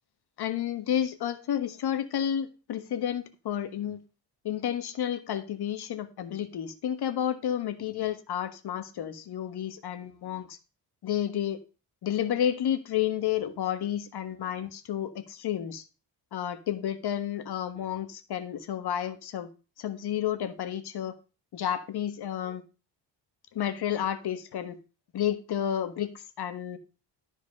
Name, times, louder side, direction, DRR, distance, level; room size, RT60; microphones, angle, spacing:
voice 1, 0.4-4.0 4.4-10.6 11.0-11.6 12.0-15.8 16.3-19.5 19.8-21.1 21.5-22.6 23.5-24.8 25.1-26.8, left 10 dB, 65° left, 1.4 m, -31 dB
13.0 x 4.7 x 5.4 m
cardioid pair, 110°, 43 cm